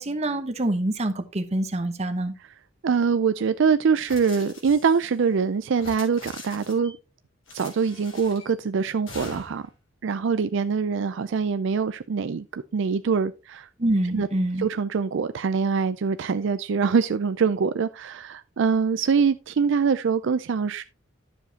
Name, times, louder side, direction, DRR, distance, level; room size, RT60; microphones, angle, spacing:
voice 1, 0.0-2.3 13.8-14.7, right 1 dB, 35° right, 1.0 m, -26 dB
voice 2, 2.8-7.0 7.5-9.7 10.0-13.7 14.1-14.3 14.6-20.8, right 5 dB, 65° right, 0.4 m, -24 dB
sound 1, 4.1-5.1 5.7-6.9 7.5-8.5 9.1-9.7, left 2 dB, 75° left, 3.3 m, -42 dB
11.0 x 7.1 x 2.9 m
head